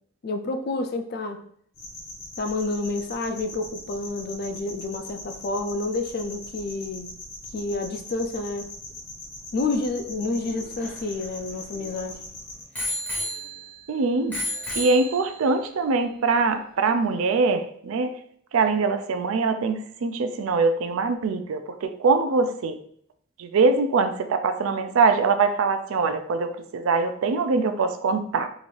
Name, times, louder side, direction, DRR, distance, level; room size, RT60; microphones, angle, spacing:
voice 1, 0.2-1.5 2.4-7.1 7.5-8.7 9.5-12.2, left 2 dB, 45° left, 7 dB, 0.4 m, -29 dB
sound 1, 1.8-12.6, left 1 dB, 75° left, 1.1 m, -41 dB
Bicycle bell, 10.4-12.1 12.7-13.9 14.3-15.6 16.3-16.4, equal, 5° left, 0.6 m, -33 dB
voice 2, 13.9-14.4 14.8-18.2 18.5-22.8 23.4-28.5, right 4 dB, 70° right, 8 dB, 0.4 m, -23 dB
3.8 x 2.5 x 3.2 m, 0.64 s
head